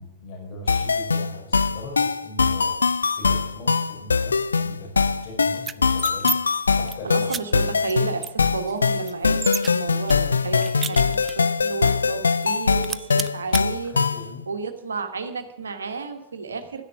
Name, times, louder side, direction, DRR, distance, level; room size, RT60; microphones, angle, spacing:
voice 1, 0.0-2.7 3.2-4.9 5.2-6.3 6.8-7.1 13.9-14.5, left 2 dB, 45° left, 0 dB, 4.8 m, -39 dB
sound 1, 0.7-14.3, left 5 dB, 75° left, 0.4 m, -22 dB
sound 2, 5.6-6.4 6.7-7.0 7.3-7.4 7.9-8.0 8.2-9.7 10.1-11.5 11.9-12.0 12.3-12.6 12.8-13.6, right 6 dB, 20° right, 0.4 m, -31 dB
voice 2, 7.0-14.1 14.5-16.8, right 4 dB, 70° right, 6 dB, 1.4 m, -32 dB
12.5 x 10.5 x 7.3 m, 0.89 s
figure-of-eight pair, 90°, 0 cm